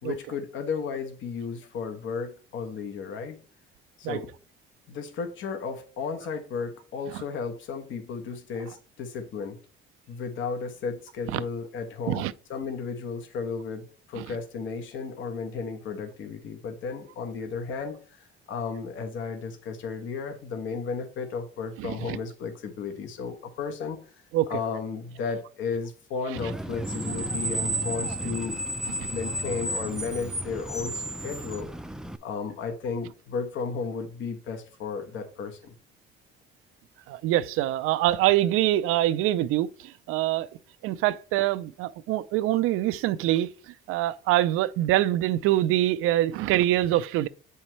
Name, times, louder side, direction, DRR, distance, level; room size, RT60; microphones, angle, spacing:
voice 1, 0.0-3.4 4.0-4.3 4.9-9.6 10.1-24.0 24.5-31.7 32.2-35.7, left 5 dB, 65° left, 1.2 m, -34 dB
voice 2, 21.8-22.2 24.3-24.5 29.0-29.1 37.1-40.5 40.8-43.5 43.9-47.3, right 14 dB, 85° right, 0.5 m, -24 dB
Screech, 26.4-32.2, right 1 dB, 5° right, 0.4 m, -32 dB
7.8 x 5.6 x 3.1 m
cardioid pair, 105°, 21 cm